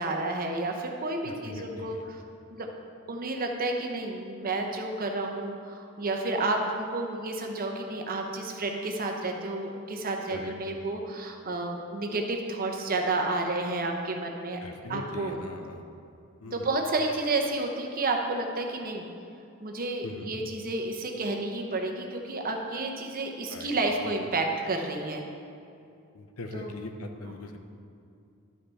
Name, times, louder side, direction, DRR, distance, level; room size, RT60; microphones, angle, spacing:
voice 1, 0.0-2.2 2.5-2.7 3.1-14.6 14.9-15.4 16.5-19.1 19.6-25.2 26.5-26.7 27.3-27.4, right 2 dB, 40° right, 2 dB, 0.8 m, -31 dB
voice 2, 1.2-2.0 10.3-10.5 14.6-15.8 16.4-16.8 20.0-20.4 23.5-24.1 26.1-27.6, left 2 dB, 75° left, 5 dB, 0.7 m, -41 dB
11.5 x 5.6 x 4.1 m, 2.5 s
head